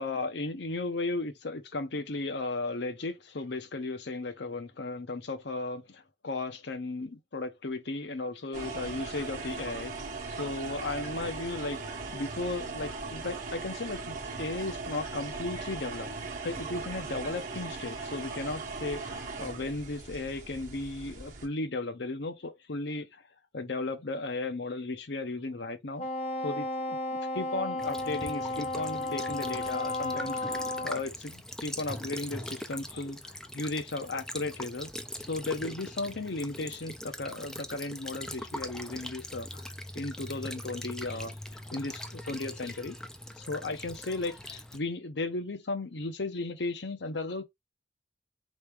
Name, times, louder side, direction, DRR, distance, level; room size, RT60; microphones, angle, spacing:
voice 1, 0.0-9.9 10.3-16.1 16.4-23.1 23.5-26.1 26.4-26.7 27.1-34.9 35.3-39.6 39.9-41.4 41.7-43.0 43.5-47.4, left 2 dB, 65° left, 0.8 m, -35 dB
sound 1, 8.5-21.5, right 3 dB, 45° right, 1.0 m, -39 dB
Wind instrument woodwind instrument, 26.0-31.0, left 2 dB, 35° left, 0.8 m, -33 dB
Child speech kid speaking / Bird vocalization bird call bird song / Stream, 27.8-44.8, left 1 dB, 5° left, 0.4 m, -42 dB
4.2 x 3.2 x 3.4 m
head